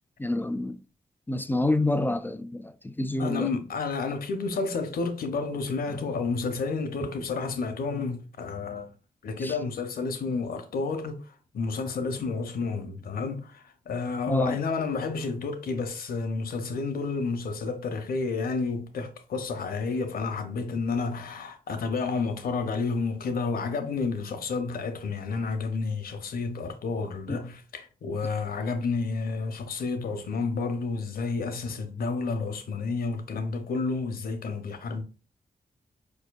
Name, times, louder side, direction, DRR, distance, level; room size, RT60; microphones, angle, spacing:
voice 1, 0.2-0.8 1.3-3.5 9.4-9.5 14.3-14.6 27.3-27.4, left 2 dB, 10° left, 0.3 m, -28 dB
voice 2, 3.2-8.9 9.2-35.0, left 4 dB, 70° left, 0.6 m, -30 dB
4.3 x 2.6 x 2.2 m
cardioid pair, 55°, 16 cm